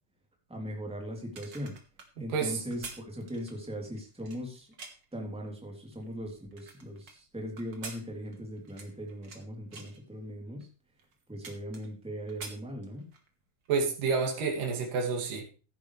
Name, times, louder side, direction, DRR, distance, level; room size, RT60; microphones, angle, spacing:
voice 1, 0.5-1.8 2.2-4.7 5.1-10.7 11.3-13.1, equal, ahead, 1 dB, 2.7 m, -39 dB
sound 1, 1.2-5.2 5.7-7.2 7.6-9.4 9.7-10.0 10.6-10.7 11.0-12.0 12.3-13.3 13.7-13.8, right 4 dB, 40° right, 2.1 m, -47 dB
voice 2, 13.7-15.4, right 5 dB, 65° right, 1 dB, 4.0 m, -29 dB
15.5 x 10.0 x 3.3 m, 0.36 s
omnidirectional pair, 4.2 m